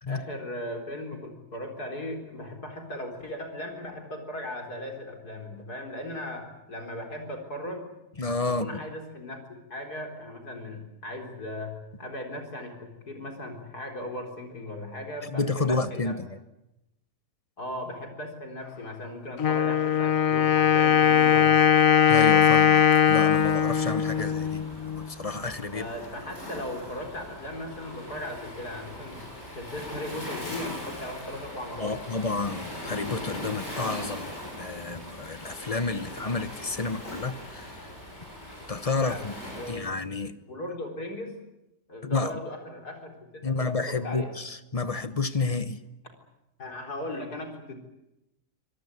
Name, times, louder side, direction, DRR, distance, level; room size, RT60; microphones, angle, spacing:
voice 1, 0.1-7.9 8.5-16.2 17.6-21.6 25.7-32.0 39.0-40.0 40.5-41.4 41.9-44.3 46.6-47.7, left 1 dB, 75° left, 4.7 m, -38 dB
voice 2, 8.2-8.7 15.3-16.3 22.1-25.9 31.8-37.9 38.7-39.3 39.7-40.3 42.0-42.3 43.4-45.8, left 3 dB, 25° left, 0.9 m, -30 dB
Wind instrument woodwind instrument, 19.4-25.1, left 8 dB, 60° left, 1.4 m, -20 dB
Waves surf, 23.3-39.7, left 1 dB, 45° left, 7.3 m, -40 dB
26.0 x 18.0 x 9.5 m
omnidirectional pair, 1.7 m